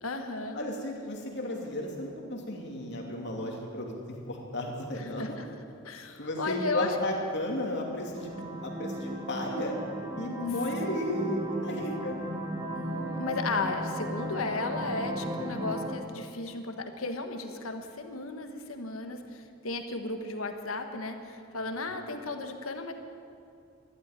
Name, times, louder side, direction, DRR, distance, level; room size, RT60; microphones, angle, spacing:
voice 1, 0.0-0.6 4.9-5.5 5.8-6.9 11.8-12.0 12.7-22.9, left 3 dB, 85° left, 5 dB, 1.4 m, -35 dB
voice 2, 0.5-5.4 6.2-9.8 10.2-12.1, left 1 dB, 55° left, 0 dB, 2.7 m, -34 dB
sound 1, 8.1-15.9, right 1 dB, 20° right, 1.6 m, -36 dB
12.5 x 12.5 x 9.1 m, 2.5 s
head